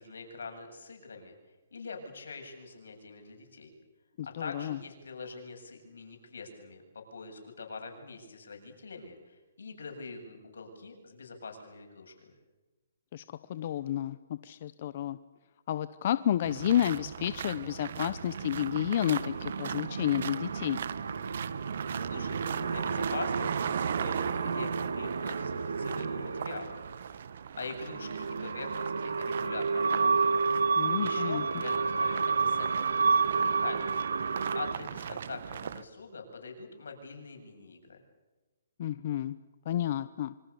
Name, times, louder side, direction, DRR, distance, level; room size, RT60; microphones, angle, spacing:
voice 1, 0.0-1.3 1.7-3.7 4.2-12.3 22.0-22.4 22.7-30.5 30.9-33.1 33.4-34.0 34.5-38.0, left 4 dB, 80° left, 4 dB, 7.9 m, -44 dB
voice 2, 4.2-4.8 13.1-15.2 15.7-20.8 30.8-31.4 38.8-39.4 39.7-40.3, left 11 dB, 45° left, 14 dB, 0.9 m, -31 dB
sound 1, 16.4-35.8, right 8 dB, 60° right, 1.4 m, -39 dB
sound 2, 17.8-27.0 27.7-34.7, right 5 dB, 85° right, 1.8 m, -31 dB
27.5 x 25.5 x 7.1 m, 1.2 s
hypercardioid pair, 155°, 0 cm